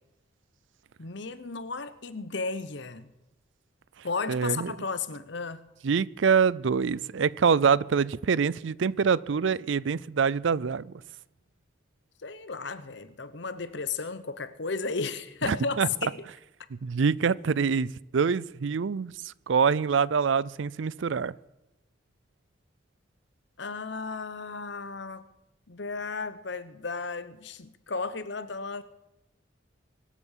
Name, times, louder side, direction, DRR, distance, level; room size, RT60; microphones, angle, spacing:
voice 1, 1.0-3.1 4.0-5.6 12.2-16.2 23.6-25.2 25.7-28.8, left 4 dB, 60° left, 1.0 m, -34 dB
voice 2, 4.3-4.7 5.8-10.9 15.5-15.9 16.7-21.3, right 6 dB, 70° right, 0.4 m, -25 dB
23.5 x 8.4 x 7.3 m
head